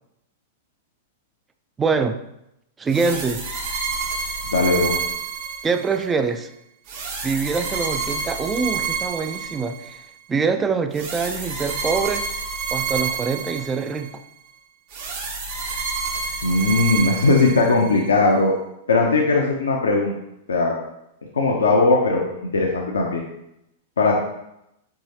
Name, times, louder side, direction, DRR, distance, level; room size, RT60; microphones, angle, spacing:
voice 1, 1.8-2.2 2.8-3.4 5.6-6.5 7.2-10.0 10.3-12.3 12.7-14.2, right 5 dB, 15° right, 9 dB, 0.3 m, -24 dB
sound 1, 2.9-6.0 6.9-10.0 10.9-14.1 14.9-18.0, right 5 dB, 50° right, 0.8 m, -29 dB
voice 2, 4.5-4.9 16.4-18.5 18.9-20.2 20.5-20.7 21.3-23.2 24.0-24.1, left 3 dB, 75° left, 0 dB, 0.5 m, -19 dB
4.7 x 3.1 x 2.7 m, 0.84 s
figure-of-eight pair, 100°, 0 cm